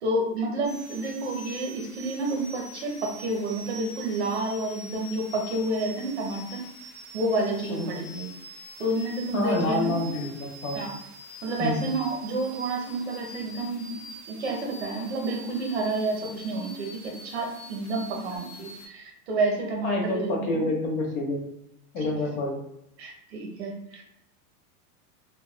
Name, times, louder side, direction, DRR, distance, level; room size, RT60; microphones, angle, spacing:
voice 1, 0.0-6.6 7.1-8.3 8.8-10.2 10.7-10.9 11.4-20.7 22.0-22.1 23.0-24.0, right 2 dB, 45° right, 0 dB, 0.5 m, -30 dB
sound 1, 0.6-18.9, right 1 dB, 15° left, 1.1 m, -45 dB
voice 2, 9.3-10.8 11.6-11.8 19.8-21.5 21.9-22.6, left 2 dB, 65° left, 1 dB, 0.9 m, -28 dB
3.4 x 2.1 x 2.2 m, 0.82 s
supercardioid pair, 180°, 46 cm